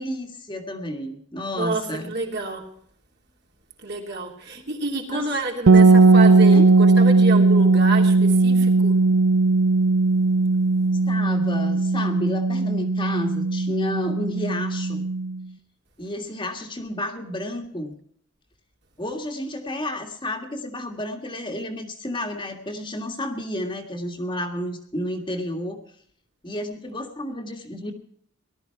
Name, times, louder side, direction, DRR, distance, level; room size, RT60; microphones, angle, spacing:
voice 1, 0.0-2.1 4.5-4.6 5.1-5.3 6.5-6.7 11.1-15.1 16.0-17.9 19.0-25.8 26.4-27.9, left 1 dB, 25° left, 3 dB, 1.8 m, -31 dB
voice 2, 1.5-2.7 3.8-9.0, right 2 dB, 55° right, 1 dB, 3.1 m, -28 dB
sound 1, 5.7-15.4, right 3 dB, 90° right, 0.7 m, -17 dB
18.5 x 12.5 x 4.6 m, 0.64 s
head